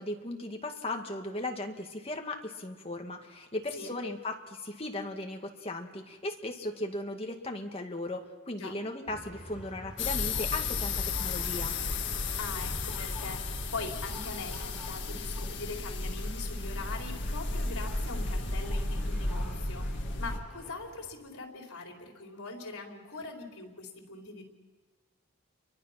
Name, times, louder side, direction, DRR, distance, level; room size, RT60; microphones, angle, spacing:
voice 1, 0.0-11.7, left 2 dB, 25° left, 2 dB, 1.9 m, -37 dB
sound 1, 9.1-21.1, equal, 5° right, 4.0 m, -47 dB
sound 2, 10.0-20.4, left 3 dB, 55° left, 1.9 m, -33 dB
voice 2, 12.4-19.9 20.2-24.5, left 3 dB, 75° left, 1 dB, 4.3 m, -42 dB
30.0 x 23.5 x 5.9 m, 1.3 s
head